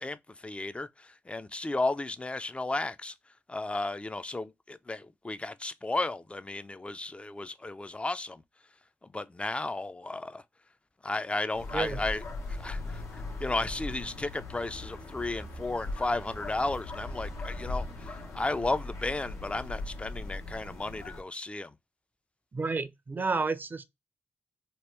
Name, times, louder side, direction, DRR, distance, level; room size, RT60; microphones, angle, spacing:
voice 1, 0.0-3.2 3.5-8.4 9.0-10.4 11.0-21.8, left 2 dB, 20° left, 0.4 m, -34 dB
sound 1, 11.5-21.2, left 2 dB, 70° left, 0.9 m, -39 dB
voice 2, 22.5-23.8, right 4 dB, 35° right, 0.5 m, -30 dB
2.9 x 2.2 x 3.2 m
supercardioid pair, 45°, 5 cm